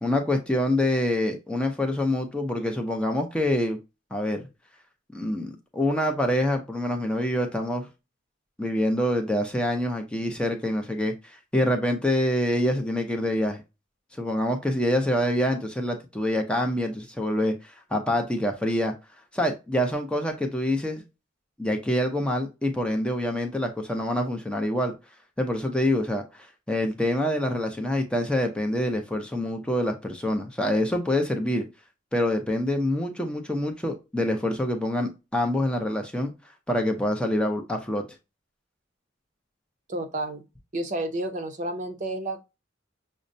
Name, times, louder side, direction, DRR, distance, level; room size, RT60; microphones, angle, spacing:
voice 1, 0.0-3.8 4.1-4.4 5.1-7.9 8.6-13.6 14.2-18.9 19.3-21.0 21.6-24.9 25.4-31.6 32.1-36.3 36.7-38.1, left 1 dB, 5° left, 0.5 m, -26 dB
voice 2, 39.9-40.4 40.7-42.4, right 1 dB, 40° right, 0.6 m, -30 dB
6.2 x 2.1 x 2.6 m
head